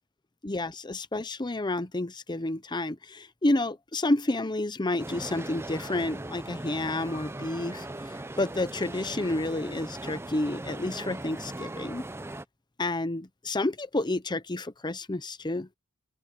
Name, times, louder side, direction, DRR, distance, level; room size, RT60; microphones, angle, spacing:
voice 1, 0.4-7.9 8.4-12.1 12.8-15.7, left 2 dB, 20° left, 0.8 m, -30 dB
sound 1, 5.0-12.5, right 1 dB, 10° right, 0.6 m, -39 dB
open air
head